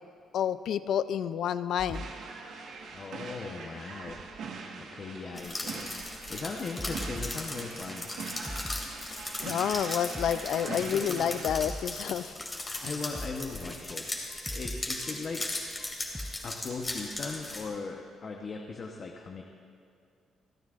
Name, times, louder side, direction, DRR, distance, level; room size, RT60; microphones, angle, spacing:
voice 1, 0.3-2.1 9.4-12.3, left 9 dB, 70° left, 14 dB, 0.4 m, -29 dB
sound 1, 1.8-7.6 7.9-8.0 8.3-9.0 9.4-9.5 9.8-9.9 10.1-12.1 12.4-12.5 12.8-12.9 13.1-14.0 14.3-15.1 15.4-16.8, equal, 5° left, 0.6 m, -43 dB
sound 2, 1.9-11.5, right 4 dB, 75° right, 1.4 m, -42 dB
voice 2, 2.9-4.2 4.9-5.9 6.3-8.1 10.6-11.4 12.8-14.1 14.5-15.4 16.4-19.4, left 4 dB, 45° left, 1 dB, 1.0 m, -39 dB
sound 3, 5.4-17.7, left 2 dB, 25° left, 2.5 m, -38 dB
28.0 x 9.5 x 2.5 m, 2.5 s
cardioid pair, 90°, 0 cm